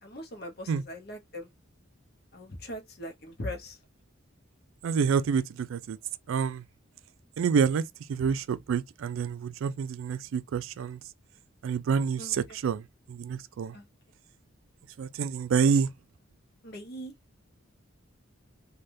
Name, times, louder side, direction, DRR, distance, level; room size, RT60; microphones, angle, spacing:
voice 1, 0.0-1.5 2.3-3.8 12.2-12.3 13.7-13.9 16.6-17.1, left 1 dB, 50° left, 0.8 m, -40 dB
voice 2, 4.8-6.0 6.3-6.6 7.4-7.8 8.1-11.0 11.6-13.7 15.0-15.9, right 6 dB, 80° right, 0.3 m, -28 dB
3.3 x 2.3 x 2.6 m
head